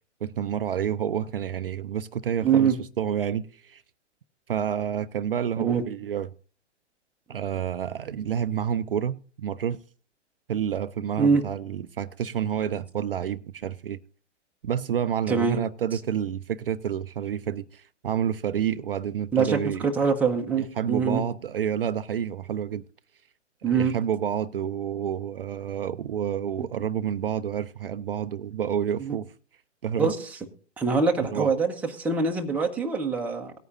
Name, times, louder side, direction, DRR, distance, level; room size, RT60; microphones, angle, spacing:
voice 1, 0.2-3.8 4.5-6.3 7.3-9.8 10.5-14.0 14.6-19.9 20.6-22.8 23.7-29.3 29.8-30.1 31.2-31.5, right 9 dB, 50° right, 0.5 m, -29 dB
voice 2, 2.4-2.8 5.6-5.8 11.2-11.4 15.3-15.6 19.3-21.2 23.6-23.9 26.6-26.7 29.0-29.2 30.0-30.2 30.8-33.5, right 5 dB, 5° right, 0.9 m, -24 dB
18.0 x 9.4 x 2.6 m
figure-of-eight pair, 120°, 36 cm